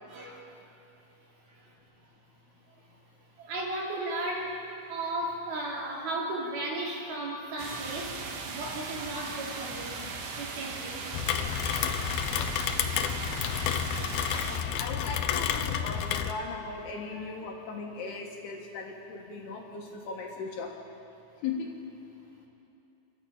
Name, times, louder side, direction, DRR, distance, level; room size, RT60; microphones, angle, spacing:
voice 1, 0.1-0.4 1.5-1.7 3.4-8.2 8.5-11.0 12.2-12.3 17.1-17.2, right 1 dB, 55° right, -2 dB, 4.4 m, -35 dB
sound 1, 7.6-14.6, right 4 dB, 70° right, 4.3 m, -38 dB
Rain, 11.1-16.3, left 9 dB, 85° left, 2.1 m, -30 dB
voice 2, 14.4-20.8 21.4-21.7, left 4 dB, 65° left, 0 dB, 3.1 m, -38 dB
28.5 x 13.5 x 8.8 m, 3.0 s
omnidirectional pair, 5.7 m